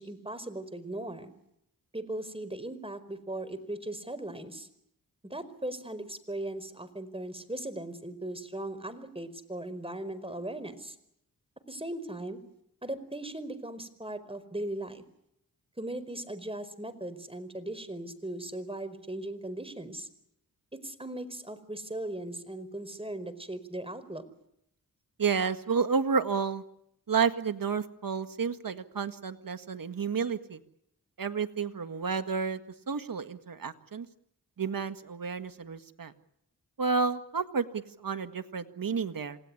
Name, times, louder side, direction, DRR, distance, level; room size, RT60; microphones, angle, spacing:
voice 1, 0.0-1.3 1.9-4.7 5.2-11.0 11.7-12.4 12.8-15.0 15.8-20.1 20.7-24.2, right 1 dB, 15° right, 11 dB, 4.7 m, -38 dB
voice 2, 25.2-26.6 27.1-30.6 31.2-32.6 32.9-34.1 34.6-36.1 36.8-39.4, right 5 dB, 65° right, 9 dB, 1.8 m, -31 dB
28.0 x 18.5 x 9.9 m, 0.78 s
cardioid pair, 45°, 36 cm